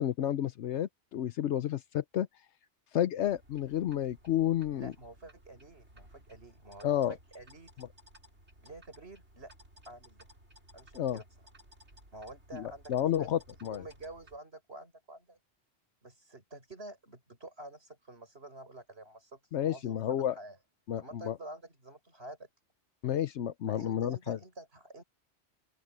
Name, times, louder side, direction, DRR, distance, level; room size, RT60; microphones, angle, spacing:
voice 1, 0.0-2.3 2.9-4.9 6.8-7.1 10.9-11.2 12.5-13.8 19.5-20.3 20.9-21.4 23.0-24.4, left 11 dB, 80° left, 1.0 m, -31 dB
sound 1, 3.2-14.4, equal, 80° right, 6.7 m, -58 dB
voice 2, 4.7-7.9 8.6-9.5 9.9-10.3 10.7-11.2 12.1-13.3 13.7-15.4 16.0-20.6 21.0-22.5 23.7-25.0, right 1 dB, 65° right, 6.5 m, -49 dB
open air
omnidirectional pair, 1.2 m